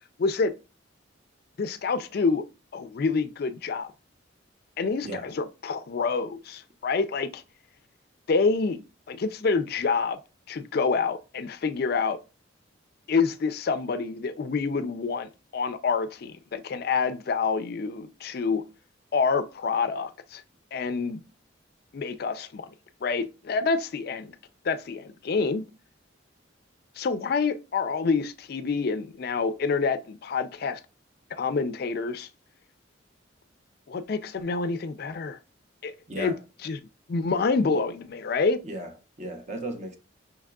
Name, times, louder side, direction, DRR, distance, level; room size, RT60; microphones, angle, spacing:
voice 1, 0.2-0.5 1.6-2.4 2.7-3.9 4.8-7.4 8.3-8.8 9.1-10.2 10.5-12.2 13.1-18.6 19.1-20.4 20.7-21.2 21.9-22.7 23.0-24.3 24.6-25.6 27.0-30.8 31.3-32.3 33.9-35.4 35.8-36.3 36.6-36.8 37.1-38.6, left 4 dB, 50° left, 0.4 m, -27 dB
voice 2, 36.1-36.4 38.6-40.0, right 1 dB, 35° right, 0.8 m, -35 dB
5.7 x 3.6 x 2.3 m
head